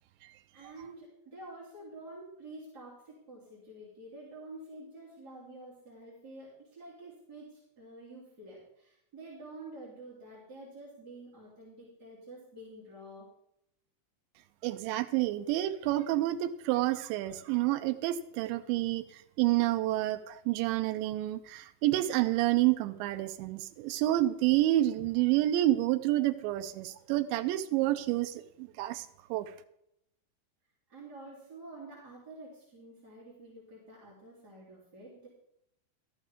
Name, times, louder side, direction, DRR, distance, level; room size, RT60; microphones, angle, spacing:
voice 1, 0.5-13.3 30.9-35.3, right 2 dB, 25° right, -8 dB, 3.0 m, -49 dB
voice 2, 14.6-19.0 19.4-29.5, right 15 dB, 85° right, 9 dB, 2.7 m, -29 dB
13.5 x 12.0 x 3.5 m, 0.76 s
omnidirectional pair, 5.6 m